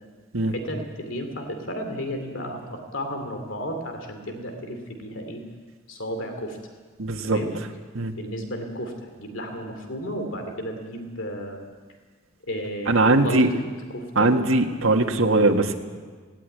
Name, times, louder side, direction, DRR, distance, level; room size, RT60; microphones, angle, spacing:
voice 1, 0.5-5.4 5.9-6.6 7.2-7.6 8.1-11.7 12.4-13.6 13.9-14.3 15.1-15.3, equal, 70° left, 5 dB, 2.7 m, -33 dB
voice 2, 7.0-7.4 7.9-8.1 12.9-13.5 14.2-15.8, right 2 dB, 80° right, 2 dB, 1.7 m, -20 dB
18.5 x 17.5 x 9.2 m, 1.5 s
head